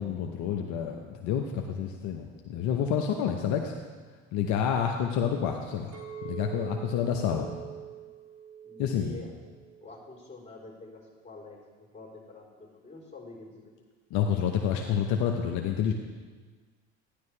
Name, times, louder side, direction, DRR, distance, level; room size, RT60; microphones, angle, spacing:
voice 1, 0.0-3.7 4.3-6.0 6.2-7.5 8.8-9.2 14.1-15.9, left 8 dB, 65° left, 3 dB, 0.9 m, -28 dB
Chink clink, 5.9-10.2 10.7-11.1, right 9 dB, 50° right, 2.6 m, -44 dB
voice 2, 8.6-9.3 9.8-13.7, left 3 dB, 20° left, -3 dB, 3.9 m, -47 dB
13.5 x 10.5 x 3.3 m, 1.5 s
hypercardioid pair, 80°, 32 cm